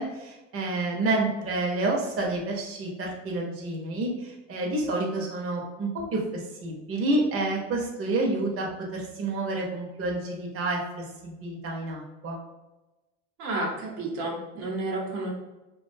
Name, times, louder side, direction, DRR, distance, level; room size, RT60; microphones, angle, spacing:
voice 1, 0.0-12.4, right 2 dB, 40° right, -1 dB, 0.7 m, -29 dB
voice 2, 13.4-15.3, right 2 dB, 80° right, -2 dB, 0.9 m, -31 dB
2.4 x 2.2 x 2.5 m, 1.1 s
supercardioid pair, 100°, 35 cm